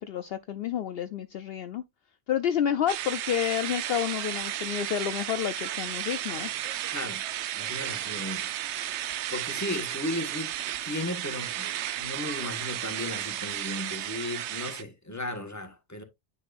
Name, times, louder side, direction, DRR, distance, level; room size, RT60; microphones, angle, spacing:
voice 1, 0.0-1.8 2.3-6.5, left 9 dB, 65° left, 0.8 m, -29 dB
sound 1, 2.9-14.8, right 12 dB, 80° right, 0.9 m, -33 dB
voice 2, 6.9-7.2 7.5-8.5 9.3-10.5 10.8-11.7 12.0-16.0, left 1 dB, 15° left, 1.5 m, -35 dB
9.6 x 5.3 x 2.6 m
omnidirectional pair, 1.1 m